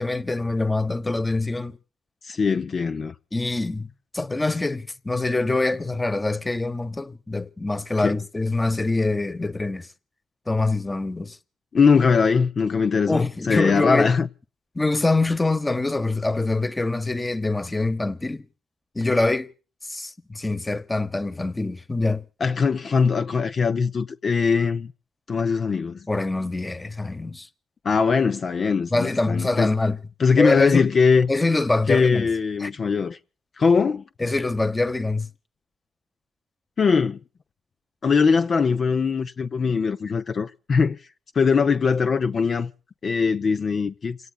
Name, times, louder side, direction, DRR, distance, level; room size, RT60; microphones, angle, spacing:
voice 1, 0.0-1.8 3.3-9.9 10.5-11.4 13.1-14.1 14.7-18.4 18.9-19.5 19.9-22.2 26.1-27.5 28.9-30.0 30.4-30.9 31.3-32.3 32.6-32.7 34.2-35.3, left 2 dB, 20° left, 1.1 m, -24 dB
voice 2, 2.2-3.1 8.0-8.2 11.7-14.3 22.4-24.9 25.3-26.1 27.8-29.7 30.2-31.3 31.9-33.2 33.6-34.0 36.8-37.2 38.0-41.0 41.3-42.7 43.0-44.2, left 5 dB, 55° left, 0.7 m, -21 dB
29.5 x 17.5 x 2.4 m
cardioid pair, 65°, 0 cm